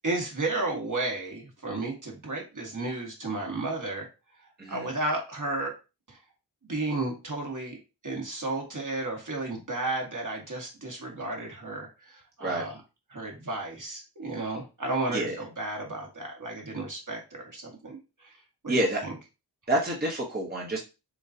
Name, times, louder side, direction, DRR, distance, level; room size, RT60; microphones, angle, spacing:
voice 1, 0.0-4.1 4.7-5.7 6.1-6.2 6.6-12.7 13.1-18.3 18.6-19.1, right 2 dB, 50° right, 0 dB, 1.7 m, -33 dB
voice 2, 18.7-19.0 19.7-20.8, right 1 dB, 25° right, -2 dB, 1.0 m, -28 dB
6.9 x 2.4 x 2.8 m, 0.29 s
cardioid pair, 50°, 40 cm